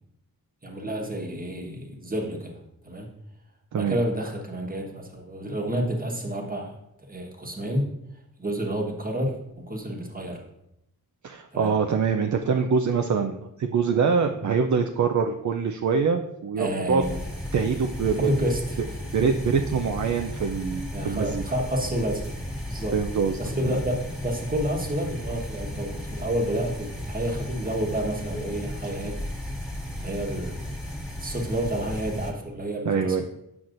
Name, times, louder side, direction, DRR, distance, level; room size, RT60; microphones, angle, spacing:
voice 1, 0.6-2.6 2.8-3.1 3.7-6.8 7.1-7.9 8.4-9.4 9.6-10.4 11.5-11.7 16.6-17.3 18.2-18.8 20.9-22.2 22.7-23.0 23.4-29.2 30.0-30.6 31.2-33.2, right 1 dB, 25° right, 1 dB, 1.2 m, -29 dB
voice 2, 11.2-17.0 17.5-18.3 19.1-21.4 22.9-23.4 23.7-23.8 32.9-33.2, right 5 dB, 55° right, 5 dB, 0.5 m, -24 dB
sound 1, 17.0-32.3, left 1 dB, 10° left, 1.6 m, -35 dB
7.7 x 5.8 x 2.5 m, 0.83 s
wide cardioid pair, 85°, 36 cm